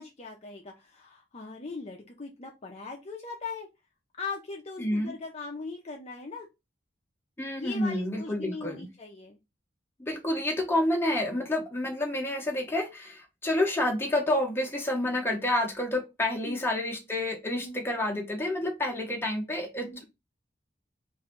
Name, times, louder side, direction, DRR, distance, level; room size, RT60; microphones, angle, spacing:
voice 1, 0.0-3.7 4.2-6.5 7.6-9.4 16.4-16.6 17.6-17.8 19.8-20.1, left 4 dB, 35° left, 0 dB, 0.6 m, -40 dB
voice 2, 4.8-5.1 7.4-8.9 10.0-20.1, left 1 dB, 15° left, 1 dB, 0.9 m, -29 dB
3.2 x 2.6 x 3.7 m, 0.23 s
head